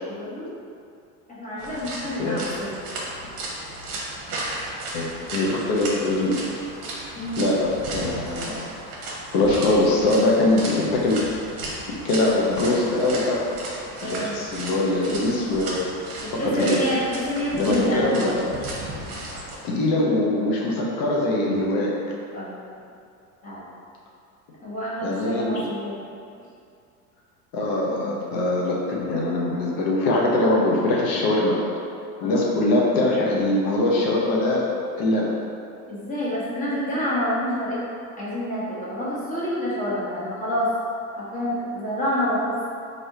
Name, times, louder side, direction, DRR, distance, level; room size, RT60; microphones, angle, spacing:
voice 1, 0.1-0.5 1.3-2.8 7.2-7.5 14.0-14.4 16.2-18.0 19.9-20.1 22.3-22.6 23.4-23.6 24.6-26.0 28.0-28.2 32.2-32.4 35.9-37.8 38.2-40.7 41.2-42.7, equal, 20° left, -9 dB, 1.2 m, -28 dB
Footsteps Puddles C, 1.6-19.6, right 2 dB, 50° right, 0.9 m, -35 dB
voice 2, 4.9-6.3 7.4-8.6 9.3-11.2 12.0-13.4 14.0-15.8 16.3-16.8 17.5-18.5 19.3-21.9 25.0-25.7 27.5-31.6 32.2-34.7 35.0-35.3, left 2 dB, 55° left, -3 dB, 0.8 m, -22 dB
3.3 x 2.6 x 2.8 m, 2.4 s
hypercardioid pair, 85°, 44 cm